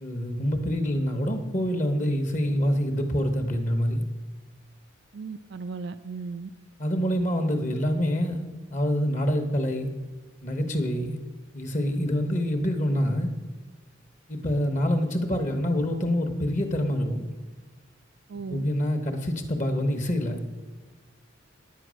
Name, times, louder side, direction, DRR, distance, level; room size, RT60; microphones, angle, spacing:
voice 1, 0.0-4.0 6.8-9.9 10.4-11.2 11.5-13.3 14.3-17.2 18.5-20.5, equal, 35° left, 6 dB, 1.0 m, -26 dB
voice 2, 5.1-6.5 18.3-18.6, right 4 dB, 55° right, 11 dB, 0.4 m, -36 dB
9.9 x 9.4 x 6.3 m, 1.2 s
head